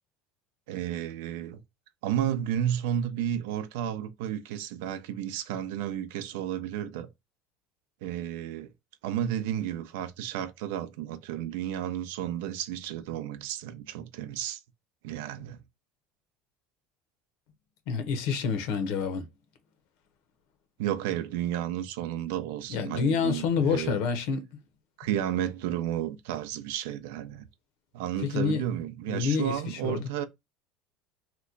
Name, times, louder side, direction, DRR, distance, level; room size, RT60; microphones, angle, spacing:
voice 1, 0.7-1.6 2.0-7.1 8.0-8.7 9.0-14.6 15.0-15.6 20.8-24.1 25.0-27.5 27.9-30.2, right 10 dB, 90° right, 0.5 m, -32 dB
voice 2, 17.9-19.2 22.7-24.5 28.2-28.6 29.1-30.1, left 6 dB, 70° left, 0.8 m, -28 dB
2.9 x 2.2 x 3.8 m
cardioid pair, 150°, 0 cm